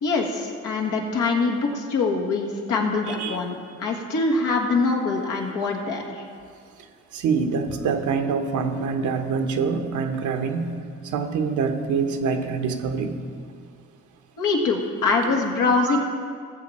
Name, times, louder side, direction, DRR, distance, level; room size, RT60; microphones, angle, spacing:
voice 1, 0.0-6.2 14.4-16.0, left 3 dB, 80° left, 0 dB, 1.8 m, -24 dB
voice 2, 3.1-3.4 7.1-10.7 11.0-13.2 15.8-16.0, right 5 dB, 80° right, 5 dB, 1.1 m, -25 dB
17.5 x 7.4 x 4.3 m, 2.2 s
cardioid pair, 90°, 30 cm